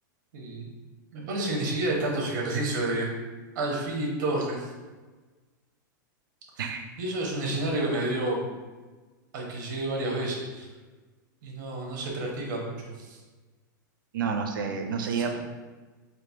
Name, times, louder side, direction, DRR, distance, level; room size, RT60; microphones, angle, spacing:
voice 1, 0.3-0.7 1.1-3.1 3.5-4.7 6.6-6.7 7.0-8.4 9.3-10.7 11.4-13.2 15.1-15.2, right 2 dB, 65° right, -1 dB, 1.1 m, -30 dB
voice 2, 14.1-15.4, right 6 dB, 90° right, 5 dB, 0.5 m, -29 dB
4.4 x 2.5 x 2.7 m, 1.3 s
supercardioid pair, 135°, 11 cm